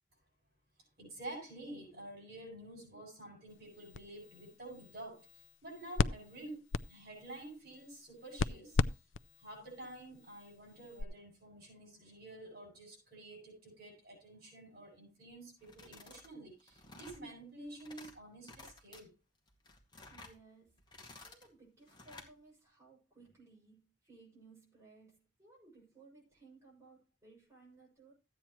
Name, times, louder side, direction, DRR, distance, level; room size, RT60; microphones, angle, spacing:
voice 1, 1.0-5.2 5.6-8.8 9.4-19.1, right 2 dB, 55° right, 7.0 m, -50 dB
sound 1, 3.5-11.0, left 5 dB, 90° left, 0.4 m, -39 dB
sound 2, 15.6-16.3 16.6-17.2 17.7-18.1 18.4-19.0 19.5-20.4 20.8-21.5 21.9-22.3, left 2 dB, 25° left, 2.1 m, -54 dB
voice 2, 20.1-28.1, right 3 dB, 15° right, 7.1 m, -61 dB
14.5 x 8.8 x 3.1 m
head